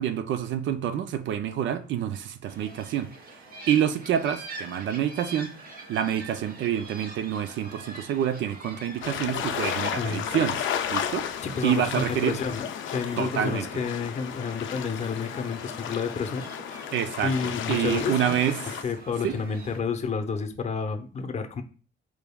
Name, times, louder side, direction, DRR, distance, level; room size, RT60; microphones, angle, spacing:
voice 1, 0.0-3.4 3.7-5.5 5.9-12.4 13.2-13.7 16.9-17.3 17.7-18.5 19.2-19.4, right 9 dB, 70° right, 0.5 m, -27 dB
sound 1, 2.5-19.8, right 2 dB, 45° right, 1.0 m, -46 dB
sound 2, 9.0-18.8, left 9 dB, 80° left, 0.5 m, -33 dB
voice 2, 9.9-10.3 11.4-16.5 17.2-18.3 18.8-21.6, left 5 dB, 35° left, 0.6 m, -30 dB
4.7 x 3.4 x 2.3 m
cardioid pair, 90°, 20 cm